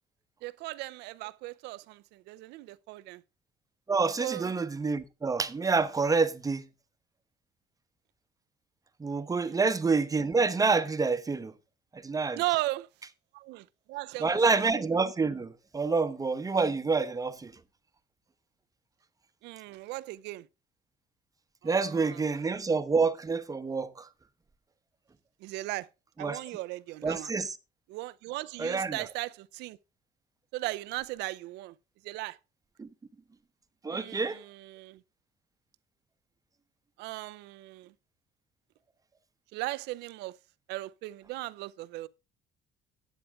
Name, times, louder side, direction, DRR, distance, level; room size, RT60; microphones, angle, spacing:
voice 1, 0.4-3.2 4.2-4.5 9.4-9.6 12.3-12.9 13.3-14.6 19.4-20.5 21.6-22.2 25.4-25.9 26.2-27.3 27.9-29.8 30.5-31.7 32.0-32.4 33.9-35.0 37.0-37.9 39.5-40.4 40.7-42.1, right 19 dB, 90° right, 0.6 m, -37 dB
voice 2, 3.9-6.6 9.0-11.5 11.9-12.4 14.2-17.5 21.6-23.9 26.2-26.4 27.0-27.5 28.6-29.0 32.8-32.9 33.8-34.4, right 4 dB, 20° right, 1.0 m, -27 dB
12.5 x 9.2 x 3.5 m
cardioid pair, 110°, 17 cm